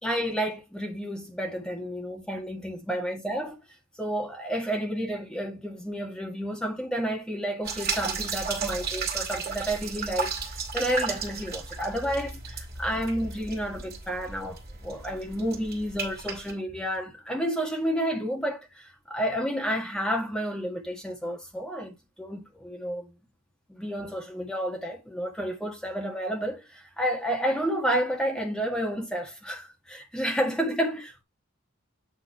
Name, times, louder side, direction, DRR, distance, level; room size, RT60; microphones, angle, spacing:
voice 1, 0.0-3.6 4.0-10.3 10.7-23.1 23.7-31.2, equal, 5° left, 1.8 m, -30 dB
sound 1, 7.6-16.5, right 5 dB, 50° right, 2.7 m, -34 dB
8.8 x 3.7 x 4.4 m
head